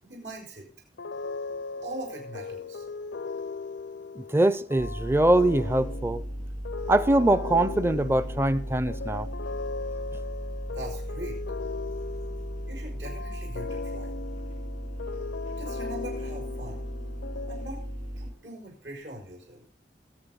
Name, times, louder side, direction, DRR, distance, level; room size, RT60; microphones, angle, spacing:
voice 1, 0.0-0.7 1.8-2.9 10.7-11.4 12.7-14.1 15.5-16.8 17.5-17.8 18.2-19.6, right 1 dB, 85° right, 5.5 m, -41 dB
sound 1, 1.0-18.2, left 4 dB, 90° left, 0.6 m, -38 dB
voice 2, 4.2-6.2 6.9-9.3, right 1 dB, 15° right, 0.5 m, -23 dB
sound 2, 4.8-18.3, equal, 45° right, 1.8 m, -36 dB
22.0 x 7.4 x 3.9 m
head